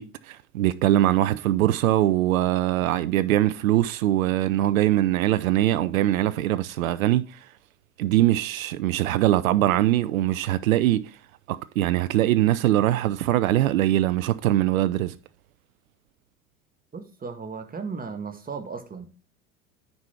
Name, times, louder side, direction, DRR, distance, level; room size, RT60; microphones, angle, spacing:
voice 1, 0.0-7.2 8.0-11.1 11.5-15.2, right 14 dB, 75° right, 0.6 m, -22 dB
voice 2, 16.9-19.1, right 5 dB, 20° right, 1.7 m, -35 dB
9.5 x 5.5 x 4.4 m
hypercardioid pair, 80°, 41 cm